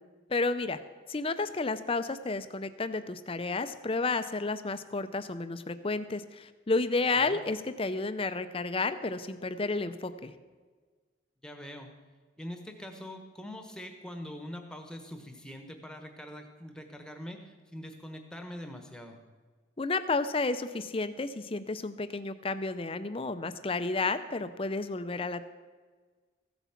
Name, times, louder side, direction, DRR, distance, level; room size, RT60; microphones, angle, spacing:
voice 1, 0.3-0.8 1.1-10.3 19.8-25.4, left 3 dB, 30° left, 11 dB, 0.5 m, -31 dB
voice 2, 11.4-11.9 12.4-19.2, left 1 dB, 5° left, 5 dB, 1.2 m, -43 dB
15.0 x 8.2 x 5.8 m, 1.4 s
head